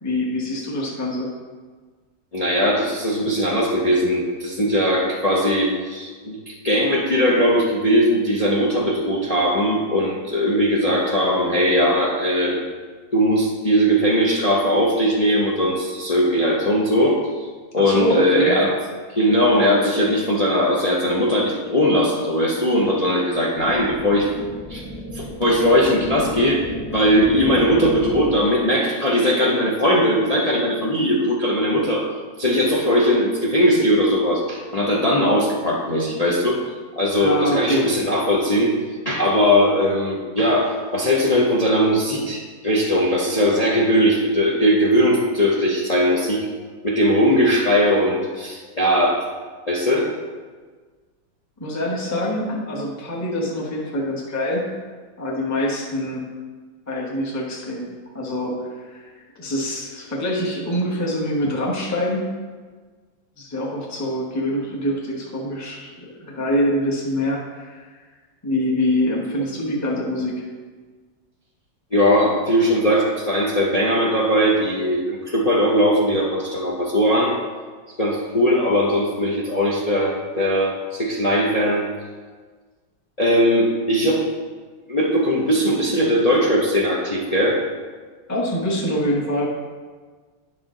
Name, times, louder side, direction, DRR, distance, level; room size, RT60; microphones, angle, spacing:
voice 1, 0.0-1.3 17.7-18.5 37.2-37.8 51.6-54.6 55.2-56.2 56.9-57.9 58.1-62.3 63.4-68.0 68.4-70.4 88.3-89.5, left 1 dB, 10° left, -4 dB, 0.9 m, -25 dB
voice 2, 2.3-12.6 13.1-17.5 17.7-18.8 19.1-24.3 24.7-24.8 25.1-26.7 26.9-32.1 32.4-36.6 37.0-38.7 39.0-46.5 46.8-49.2 49.7-50.1 71.9-77.4 78.0-81.8 83.2-84.3 84.9-87.6, equal, 80° left, -4 dB, 0.3 m, -19 dB
sound 1, 23.6-28.6, equal, 40° left, 2.0 m, -33 dB
10.0 x 5.7 x 3.8 m, 1.5 s
omnidirectional pair, 2.1 m